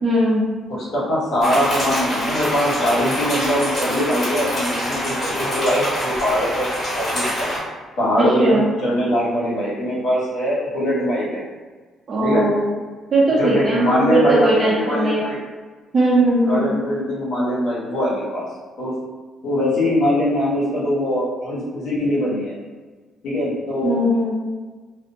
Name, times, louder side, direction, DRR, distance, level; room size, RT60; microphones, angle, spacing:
voice 1, 0.0-0.4 8.2-8.7 12.1-12.6 13.1-15.2 15.9-16.8 23.8-24.3, right 1 dB, 45° right, -7 dB, 0.6 m, -18 dB
voice 2, 0.7-6.7 6.9-7.5 8.0-11.4 12.2-12.4 13.4-15.4 16.4-18.5 18.8-18.9 19.4-22.5 23.2-24.0, equal, 70° left, -7 dB, 1.1 m, -22 dB
sound 1, 1.4-7.6, equal, 35° left, 1.4 m, -25 dB
2.5 x 2.1 x 2.7 m, 1.4 s
supercardioid pair, 60°, 0 cm